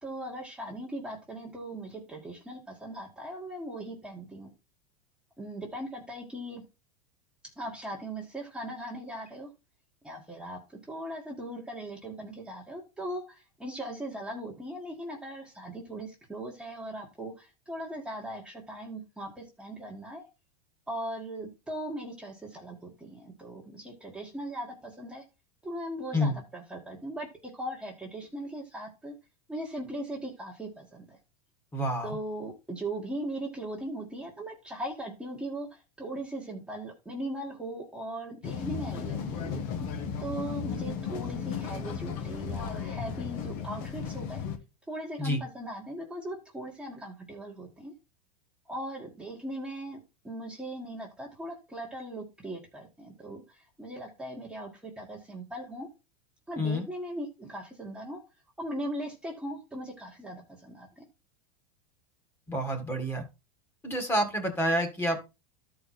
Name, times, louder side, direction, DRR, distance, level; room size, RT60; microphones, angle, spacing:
voice 1, 0.0-4.5 5.4-6.6 7.6-9.5 10.0-10.6 10.9-20.2 20.9-25.2 25.6-29.2 29.5-31.2 32.0-39.6 40.2-44.4 44.9-47.9 48.7-50.0 50.2-55.9 56.5-58.2 58.6-61.0, right 1 dB, 5° right, -3 dB, 1.6 m, -39 dB
voice 2, 31.7-32.2 45.2-45.4 56.6-56.8 62.5-63.2 63.8-65.3, equal, 10° left, 4 dB, 1.9 m, -28 dB
sound 1, 38.4-44.6, left 6 dB, 50° left, 1.5 m, -35 dB
12.5 x 4.7 x 4.2 m, 0.27 s
supercardioid pair, 150°, 19 cm